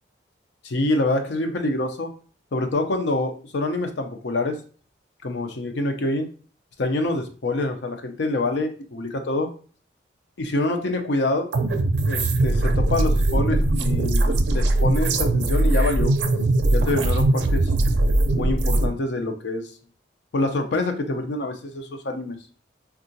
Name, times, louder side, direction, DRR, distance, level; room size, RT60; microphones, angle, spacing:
voice 1, 0.6-2.1 2.5-4.6 5.2-6.3 6.8-9.5 10.4-11.5 12.1-16.1 16.7-17.7 18.3-19.7 20.3-22.4, left 2 dB, 70° left, 5 dB, 0.5 m, -26 dB
sound 1, 11.5-18.9, right 2 dB, 70° right, 0.4 m, -20 dB
3.7 x 2.4 x 2.6 m, 0.40 s
head